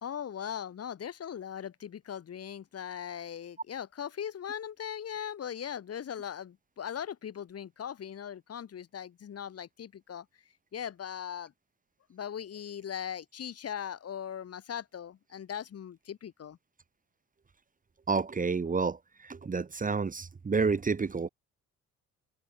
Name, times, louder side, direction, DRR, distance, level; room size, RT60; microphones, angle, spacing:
voice 1, 0.0-11.5 12.1-16.6, left 9 dB, 55° left, 2.3 m, -39 dB
voice 2, 18.1-19.0 19.2-21.3, right 4 dB, 25° right, 1.3 m, -29 dB
cardioid pair, 90°, 30 cm